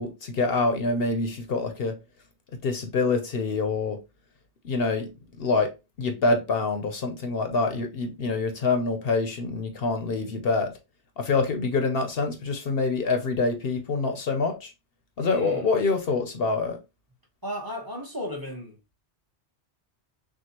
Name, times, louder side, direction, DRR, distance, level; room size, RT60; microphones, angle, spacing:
voice 1, 0.0-2.0 2.6-4.0 4.6-5.1 5.4-5.7 6.0-10.7 11.2-14.7 15.2-16.8, left 3 dB, 60° left, 0.8 m, -26 dB
voice 2, 15.2-15.6 17.4-18.8, equal, 20° right, 1.0 m, -34 dB
6.1 x 2.4 x 2.9 m
omnidirectional pair, 1.2 m